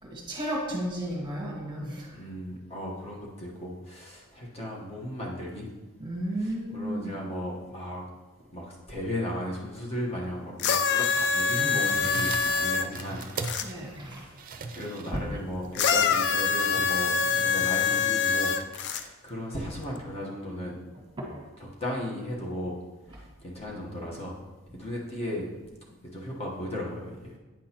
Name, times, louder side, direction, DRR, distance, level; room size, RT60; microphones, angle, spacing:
voice 1, 0.0-2.2 6.0-7.2 12.4-12.5 13.6-14.3 15.1-15.2 20.9-21.4 23.1-23.2, right 1 dB, 20° right, -2 dB, 1.4 m, -34 dB
voice 2, 2.1-5.7 6.4-8.1 8.5-13.2 14.4-20.8 21.6-22.8 23.1-24.4 24.7-25.5 26.1-27.4, left 1 dB, 30° left, -3 dB, 1.1 m, -36 dB
sound 1, 10.6-13.7 15.8-19.0 20.0-20.1, left 6 dB, 55° left, 0.4 m, -25 dB
sound 2, 11.9-18.7, right 4 dB, 40° right, 0.5 m, -41 dB
8.8 x 6.2 x 2.9 m, 1.2 s
head